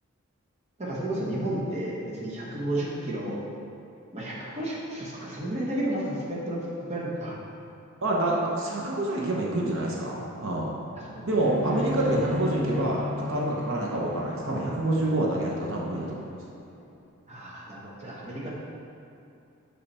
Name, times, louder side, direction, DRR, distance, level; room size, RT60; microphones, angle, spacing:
voice 1, 0.8-3.4 4.1-7.4 11.1-11.2 11.7-11.8 17.3-18.5, right 1 dB, 30° right, -5 dB, 0.9 m, -32 dB
voice 2, 8.0-10.7 11.2-16.2, right 1 dB, 60° right, -3 dB, 0.9 m, -27 dB
Bowed string instrument, 11.4-16.7, left 2 dB, 5° left, 0.6 m, -34 dB
5.6 x 5.5 x 4.2 m, 2.7 s
head